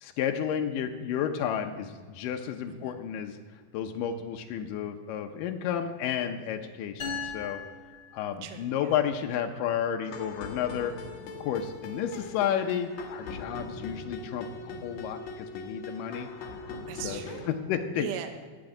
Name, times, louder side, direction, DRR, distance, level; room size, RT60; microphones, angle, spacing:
voice 1, 0.0-3.4 3.7-7.6 8.1-10.9 11.4-16.3 17.0-17.2 17.7-18.1, left 9 dB, 90° left, 5 dB, 1.9 m, -31 dB
voice 2, 2.7-3.0 8.4-9.0 15.8-16.0 16.9-17.6 18.0-18.3, right 12 dB, 75° right, 6 dB, 2.2 m, -40 dB
sound 1, 7.0-8.8, left 5 dB, 35° left, 4.5 m, -38 dB
sound 2, 10.0-17.5, left 3 dB, 75° left, 1.6 m, -40 dB
14.0 x 5.1 x 8.9 m, 1.5 s
omnidirectional pair, 4.7 m